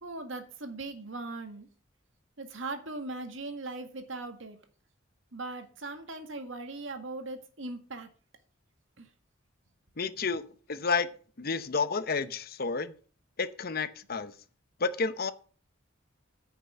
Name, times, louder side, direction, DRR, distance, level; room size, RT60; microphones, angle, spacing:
voice 1, 0.0-1.7 2.4-4.6 5.3-8.1 9.0-9.1, right 2 dB, 75° right, 1.7 m, -39 dB
voice 2, 10.0-11.1 11.4-12.9 13.4-14.3 14.8-15.3, left 4 dB, 50° left, 0.8 m, -30 dB
9.8 x 6.0 x 7.2 m
head